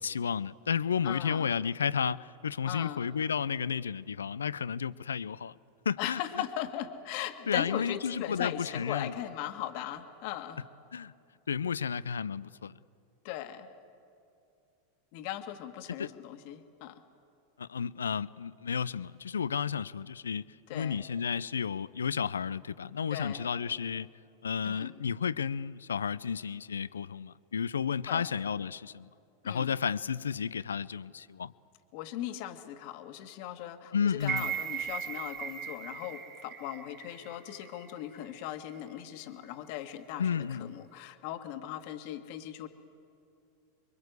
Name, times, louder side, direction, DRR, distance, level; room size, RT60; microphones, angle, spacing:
voice 1, 0.0-5.5 5.9-6.2 7.5-9.1 10.9-11.1 11.5-12.8 16.0-16.1 17.6-24.1 24.4-29.1 29.4-31.5 33.9-34.5 40.2-40.9, left 7 dB, 85° left, 0.5 m, -32 dB
voice 2, 1.0-1.5 2.7-3.0 6.0-10.6 13.2-13.7 15.1-17.0 20.7-21.0 23.1-23.4 24.6-24.9 28.1-28.2 29.4-29.7 31.9-40.3 40.6-42.7, left 12 dB, 55° left, 1.8 m, -38 dB
sound 1, 34.2-38.3 38.7-38.8, right 9 dB, 50° right, 3.9 m, -38 dB
26.0 x 23.0 x 8.0 m
hypercardioid pair, 95°, 0 cm